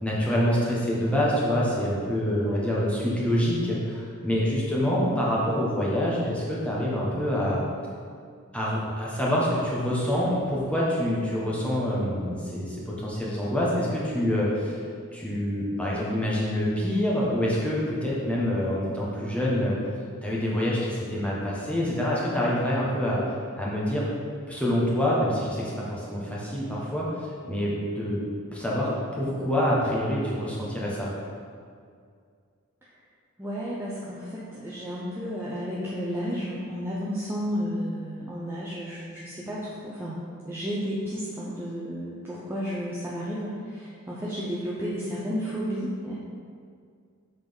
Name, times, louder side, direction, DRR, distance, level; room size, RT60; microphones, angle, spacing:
voice 1, 0.0-7.6 8.5-14.8 15.1-19.8 20.2-23.2 23.6-24.1 24.5-27.1 27.5-28.2 28.5-31.1, equal, 5° left, -6 dB, 1.3 m, -26 dB
voice 2, 2.3-2.8 33.4-46.2, equal, 10° right, -7 dB, 0.7 m, -32 dB
7.4 x 4.0 x 5.3 m, 2.2 s
head